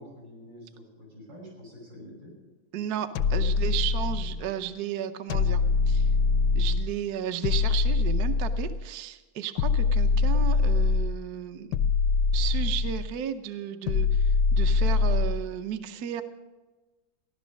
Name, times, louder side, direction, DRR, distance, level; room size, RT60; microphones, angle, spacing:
voice 1, 0.0-2.4, equal, 90° right, -2 dB, 7.0 m, -47 dB
voice 2, 2.7-6.1 6.5-11.7 12.3-16.2, right 9 dB, 60° right, 8 dB, 1.1 m, -34 dB
sound 1, 3.2-4.5 5.3-6.9 7.4-8.9 9.6-11.2 11.7-13.1 13.9-15.5, left 4 dB, 70° left, 1.1 m, -24 dB
15.5 x 11.5 x 6.4 m, 1.2 s
omnidirectional pair, 2.1 m